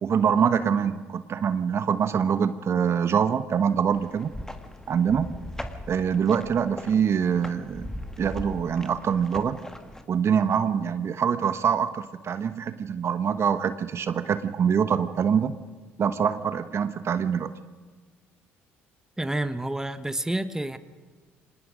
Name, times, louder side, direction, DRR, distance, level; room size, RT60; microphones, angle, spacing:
voice 1, 0.0-4.3 4.9-5.3 5.9-7.9 8.2-9.6 10.1-15.5 16.0-17.5, right 7 dB, 50° right, 12 dB, 1.1 m, -24 dB
sound 1, 3.9-10.0, left 1 dB, 10° left, 1.9 m, -40 dB
voice 2, 19.2-20.8, right 1 dB, 10° right, 12 dB, 1.2 m, -29 dB
25.0 x 20.0 x 5.2 m, 1.4 s
hypercardioid pair, 60°, 6 cm